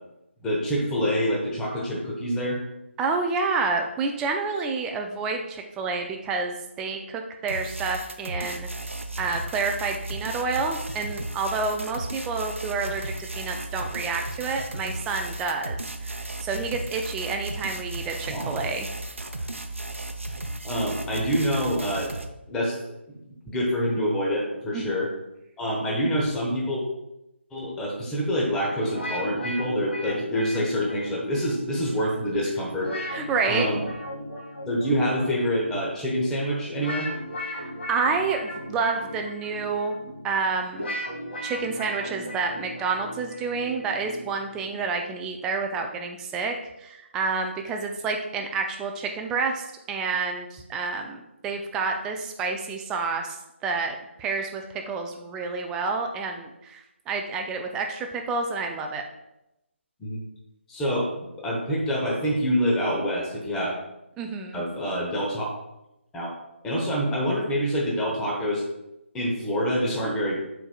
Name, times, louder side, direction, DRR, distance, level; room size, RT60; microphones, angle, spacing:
voice 1, 0.4-2.6 18.3-18.5 20.6-22.1 22.5-22.8 23.1-23.2 23.4-25.1 25.6-26.8 27.5-32.9 33.4-33.8 34.7-37.1 60.0-60.2 60.7-63.7 64.5-65.5 66.1-66.3 66.6-68.6 69.1-70.4, equal, 10° left, -3 dB, 1.0 m, -26 dB
voice 2, 3.0-8.7 9.2-18.9 24.7-24.9 33.1-33.7 37.4-40.9 41.4-59.0 64.2-64.6, right 4 dB, 10° right, 3 dB, 0.4 m, -29 dB
sound 1, 7.5-22.2, right 2 dB, 85° right, 0.7 m, -35 dB
sound 2, 28.8-44.7, equal, 60° left, 2.2 m, -37 dB
10.5 x 4.5 x 2.3 m, 0.89 s
figure-of-eight pair, 150°, 7 cm